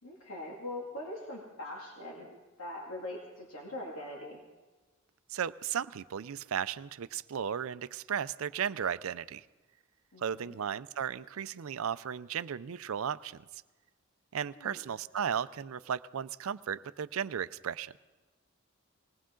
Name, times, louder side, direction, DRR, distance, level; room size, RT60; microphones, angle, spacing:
voice 1, 0.0-4.4 10.1-10.5 14.6-14.9, left 1 dB, 75° left, -2 dB, 2.3 m, -42 dB
voice 2, 5.3-9.4 10.2-13.4 14.3-17.9, right 8 dB, 75° right, 16 dB, 0.4 m, -35 dB
20.5 x 18.5 x 3.8 m, 1.2 s
head